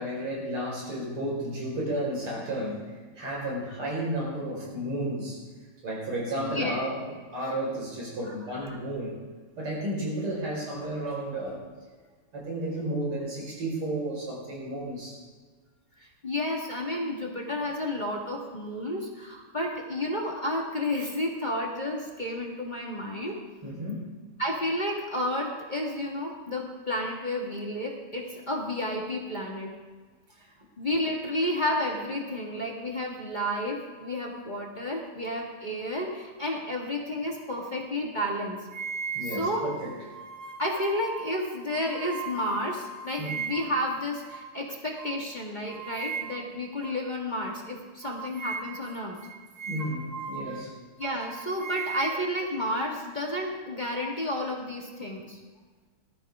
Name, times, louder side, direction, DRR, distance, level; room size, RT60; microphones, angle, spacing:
voice 1, 0.0-2.8 3.2-5.4 5.8-9.1 9.6-11.6 12.3-15.2 23.6-24.1 39.1-39.9 43.2-43.3 49.7-50.7, right 1 dB, 90° right, -3 dB, 5.9 m, -32 dB
voice 2, 6.4-6.8 8.3-8.8 16.0-23.4 24.4-29.7 30.8-38.7 39.2-39.7 40.6-49.2 51.0-55.4, left 1 dB, 20° left, -2 dB, 1.8 m, -31 dB
sound 1, 38.7-43.8 44.3-44.5 45.0-45.2 45.7-46.6 46.8-47.0 47.4-47.6 48.0-50.7 51.0-52.8, right 4 dB, 40° right, 1.3 m, -38 dB
20.0 x 13.5 x 3.7 m, 1.4 s
omnidirectional pair, 2.4 m